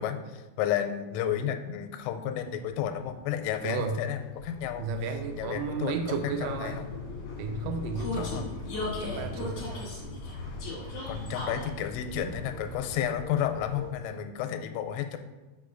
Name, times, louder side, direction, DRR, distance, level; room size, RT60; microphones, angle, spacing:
voice 1, 0.0-4.9 5.4-6.8 8.2-8.5 11.1-15.2, left 9 dB, 85° left, 8 dB, 3.1 m, -32 dB
Vehicle, 2.3-14.2, left 2 dB, 70° left, 1.4 m, -38 dB
voice 2, 3.6-4.0 4.8-6.8 7.4-8.7 9.0-9.9, right 5 dB, 85° right, 6 dB, 2.9 m, -33 dB
6.8 x 4.9 x 3.8 m, 1.2 s
omnidirectional pair, 5.6 m